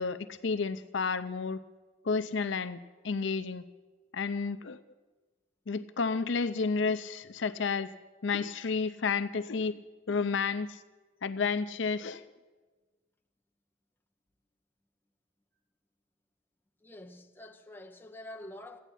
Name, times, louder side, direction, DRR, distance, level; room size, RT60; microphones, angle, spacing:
voice 1, 0.0-1.6 2.0-2.8 3.0-3.6 4.1-4.8 5.7-7.9 8.2-9.8 10.1-10.8 11.2-12.2, left 4 dB, 70° left, 0.6 m, -31 dB
voice 2, 16.8-18.8, left 1 dB, 10° left, 1.0 m, -47 dB
13.5 x 9.1 x 10.0 m
head